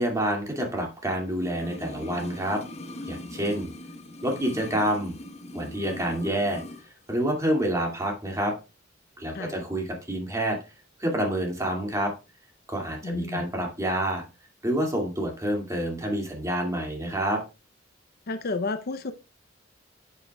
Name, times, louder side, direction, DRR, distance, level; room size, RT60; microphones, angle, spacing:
voice 1, 0.0-2.6 3.0-3.7 4.2-5.2 5.5-6.6 7.1-8.5 9.2-10.6 11.0-12.1 12.7-14.2 14.6-17.4, right 1 dB, 15° right, 2.1 m, -28 dB
sound 1, 1.4-6.9 7.1-7.2, left 1 dB, 35° left, 1.0 m, -40 dB
voice 2, 13.0-13.4 18.3-19.1, left 3 dB, 50° left, 0.6 m, -31 dB
10.5 x 7.5 x 2.3 m
head